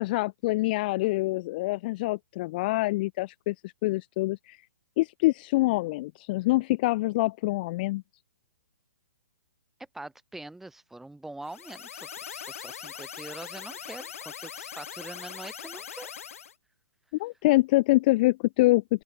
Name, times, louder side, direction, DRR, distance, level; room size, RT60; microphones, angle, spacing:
voice 1, 0.0-4.6 5.0-8.0 17.2-19.0, left 20 dB, 35° left, 0.5 m, -25 dB
voice 2, 9.9-16.1, right 2 dB, 5° right, 2.9 m, -43 dB
sound 1, 11.4-16.5, left 8 dB, 60° left, 1.8 m, -41 dB
open air
figure-of-eight pair, 125°, 9 cm